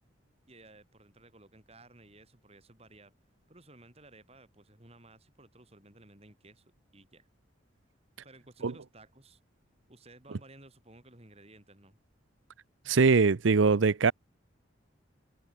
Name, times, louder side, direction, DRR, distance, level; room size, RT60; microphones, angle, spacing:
voice 1, 0.5-3.1 3.5-7.3 8.2-9.4 9.9-12.0, right 2 dB, 30° right, 5.1 m, -56 dB
voice 2, 12.9-14.1, right 4 dB, 75° right, 0.6 m, -22 dB
head